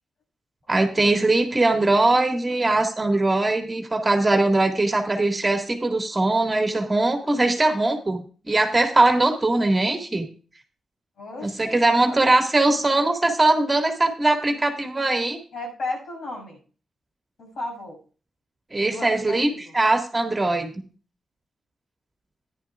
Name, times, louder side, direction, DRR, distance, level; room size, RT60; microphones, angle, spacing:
voice 1, 0.7-10.2 11.4-15.4 18.7-19.5 19.7-20.7, right 2 dB, 20° right, 4 dB, 1.8 m, -21 dB
voice 2, 11.2-12.1 15.5-16.6 17.4-18.0 18.8-19.7, left 2 dB, 75° left, -1 dB, 6.7 m, -34 dB
14.5 x 10.5 x 2.4 m, 0.38 s
cardioid pair, 90°, 0 cm